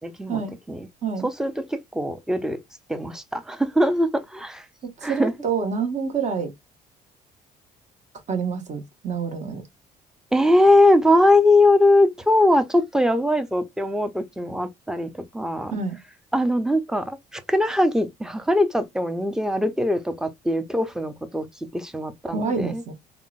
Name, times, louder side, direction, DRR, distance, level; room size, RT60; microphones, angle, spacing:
voice 1, 1.2-2.6 2.9-4.6 5.0-5.3 10.3-15.7 16.3-21.5 21.7-22.8, left 1 dB, 5° right, 0.5 m, -21 dB
voice 2, 4.8-6.5 8.3-9.6 15.7-16.0 22.3-22.9, right 5 dB, 45° right, 1.1 m, -27 dB
3.6 x 2.1 x 2.4 m
cardioid pair, 110°, 17 cm